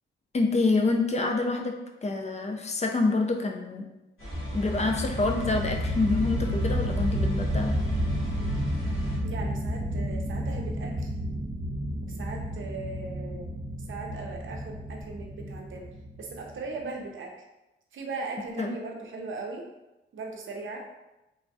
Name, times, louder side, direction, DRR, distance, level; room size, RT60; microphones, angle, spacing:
voice 1, 0.3-3.9 4.5-7.7 18.6-18.7, left 3 dB, 35° left, 2 dB, 0.4 m, -27 dB
sound 1, 4.2-9.2, equal, 80° left, 1.1 m, -40 dB
sound 2, 4.3-16.7, equal, 35° right, 0.8 m, -31 dB
voice 2, 9.2-11.1 12.1-13.5 13.9-15.9 16.2-17.3 17.9-19.7 20.1-20.8, right 3 dB, 70° right, 1 dB, 0.6 m, -38 dB
3.2 x 2.3 x 2.6 m, 0.97 s
cardioid pair, 80°, 21 cm